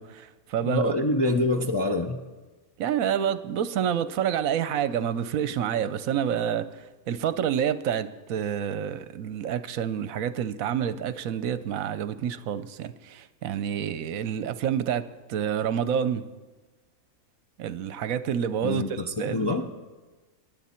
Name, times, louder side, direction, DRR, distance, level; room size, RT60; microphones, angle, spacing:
voice 1, 0.0-0.9 2.8-16.2 17.6-19.5, right 9 dB, 70° right, 14 dB, 1.0 m, -28 dB
voice 2, 0.6-2.2 18.6-19.7, left 2 dB, 30° left, 3 dB, 0.4 m, -26 dB
23.5 x 10.5 x 4.4 m, 1.2 s
omnidirectional pair, 1.6 m